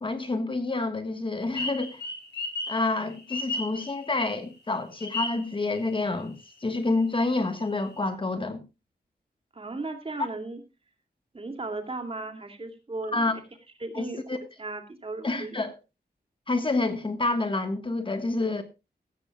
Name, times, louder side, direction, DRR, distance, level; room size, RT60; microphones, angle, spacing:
voice 1, 0.0-2.0 2.7-6.3 6.6-8.6 13.1-13.3 13.9-14.4 15.2-15.8 16.5-18.6, left 2 dB, 30° left, 1.5 m, -28 dB
sound 1, 1.5-4.4 5.0-6.1 6.4-6.5 6.9-8.0, left 2 dB, 85° left, 3.6 m, -34 dB
voice 2, 9.5-10.6 11.3-13.4 13.8-15.7, right 2 dB, 35° right, 2.6 m, -36 dB
16.5 x 15.0 x 2.3 m
wide cardioid pair, 140°, 17 cm